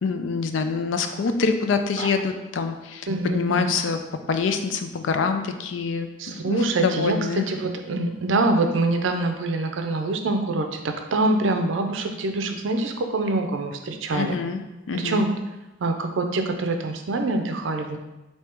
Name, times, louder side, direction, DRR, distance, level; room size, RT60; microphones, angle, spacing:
voice 1, 0.0-4.0 4.3-7.5 14.1-14.6 14.9-15.3, left 5 dB, 75° left, 7 dB, 0.4 m, -25 dB
voice 2, 3.1-3.7 6.2-7.2 7.5-14.3 14.9-15.3 15.8-18.0, right 2 dB, 80° right, 5 dB, 0.5 m, -25 dB
3.5 x 2.8 x 4.4 m, 1.0 s
head